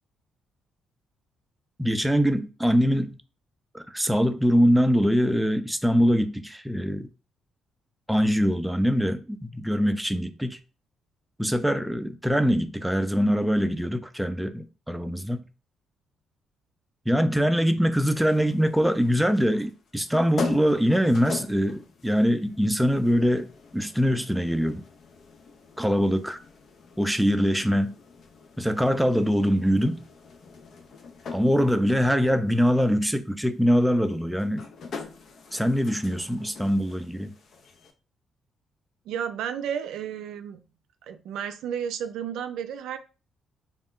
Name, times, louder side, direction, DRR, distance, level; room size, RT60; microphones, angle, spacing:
voice 1, 1.8-3.2 3.7-7.1 8.1-10.6 11.4-15.5 17.1-23.5 23.7-24.9 25.8-26.4 27.0-28.0 28.6-30.0 31.3-34.7 35.5-37.4, equal, 5° right, 0.4 m, -23 dB
sound 1, 18.2-37.9, left 4 dB, 60° left, 0.5 m, -42 dB
voice 2, 39.1-40.6 41.0-43.0, right 8 dB, 85° right, 0.3 m, -32 dB
2.3 x 2.1 x 3.6 m
cardioid pair, 90°, 0 cm